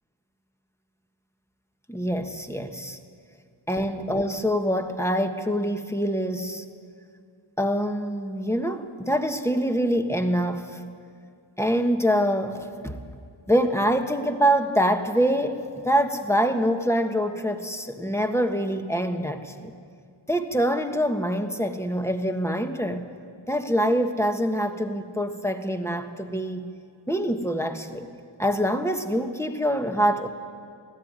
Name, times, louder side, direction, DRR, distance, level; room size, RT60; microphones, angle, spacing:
voice 1, 1.9-3.0 3.7-6.6 7.6-10.8 11.6-13.0 13.5-19.7 20.3-23.0 23.5-26.6 27.1-28.1 28.4-30.3, equal, 5° left, 6 dB, 1.4 m, -25 dB
19.5 x 14.5 x 9.6 m, 2.2 s
wide cardioid pair, 45°, 49 cm